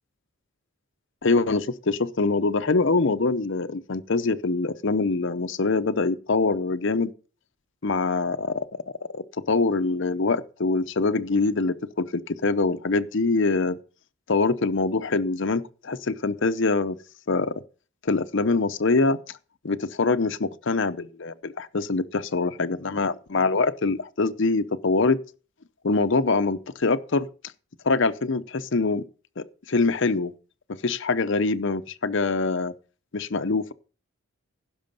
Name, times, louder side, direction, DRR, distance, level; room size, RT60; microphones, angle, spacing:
voice 1, 1.2-7.1 7.8-8.8 9.1-13.8 14.3-17.0 17.3-17.5 18.0-19.4 19.6-25.2 25.8-27.3 27.8-29.0 29.4-30.3 30.7-32.7 33.1-33.7, left 3 dB, 55° left, 0.7 m, -24 dB
16.0 x 6.3 x 5.5 m
head